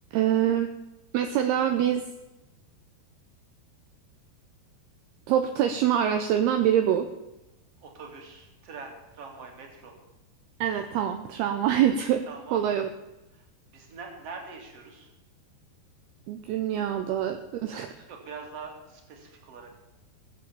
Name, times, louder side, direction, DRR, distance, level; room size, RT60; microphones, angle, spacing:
voice 1, 0.1-0.7 1.1-2.0 5.3-7.1 10.6-12.2 12.5-12.9 16.3-17.9, right 10 dB, 75° right, 6 dB, 2.6 m, -25 dB
voice 2, 7.8-9.9 12.3-12.8 13.3-13.5 13.7-15.1 18.1-19.7, right 4 dB, 40° right, 2 dB, 2.9 m, -43 dB
18.0 x 7.5 x 7.0 m, 0.98 s
omnidirectional pair, 4.9 m